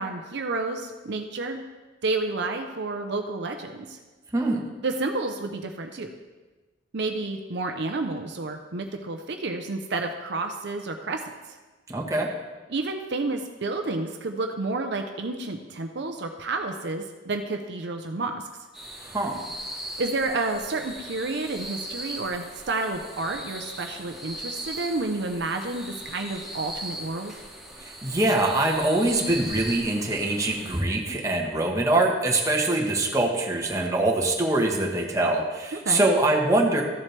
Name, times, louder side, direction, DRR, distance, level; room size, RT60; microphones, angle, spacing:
voice 1, 0.0-1.6 2.0-4.0 4.8-6.1 6.9-11.2 12.7-18.4 20.0-27.3 35.7-36.1, right 3 dB, 65° right, 5 dB, 0.7 m, -30 dB
voice 2, 4.3-4.6 11.9-12.3 19.0-19.4 27.8-36.8, right 2 dB, 20° right, -1 dB, 1.2 m, -23 dB
sound 1, 18.7-30.8, right 1 dB, ahead, 1.9 m, -39 dB
13.5 x 7.4 x 3.3 m, 1.3 s
head